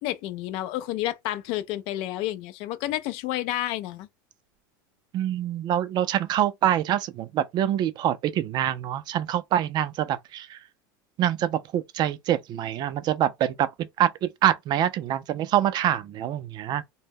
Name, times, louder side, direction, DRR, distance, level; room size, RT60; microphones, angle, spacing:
voice 1, 0.0-4.1, left 14 dB, 55° left, 0.4 m, -30 dB
voice 2, 5.1-10.6 11.2-16.8, right 11 dB, 40° right, 0.4 m, -25 dB
2.1 x 2.0 x 3.4 m
supercardioid pair, 120°, 11 cm